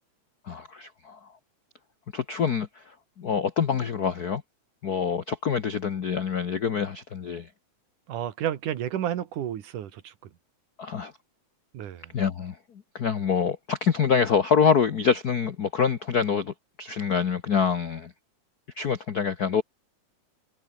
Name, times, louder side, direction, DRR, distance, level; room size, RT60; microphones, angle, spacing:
voice 1, 0.5-1.3 2.1-4.4 4.8-7.5 10.8-11.1 12.1-12.6 12.9-18.1 18.8-19.6, left 6 dB, 75° left, 0.8 m, -26 dB
voice 2, 8.1-10.3 11.7-12.1, right 10 dB, 90° right, 3.3 m, -31 dB
omnidirectional pair, 3.5 m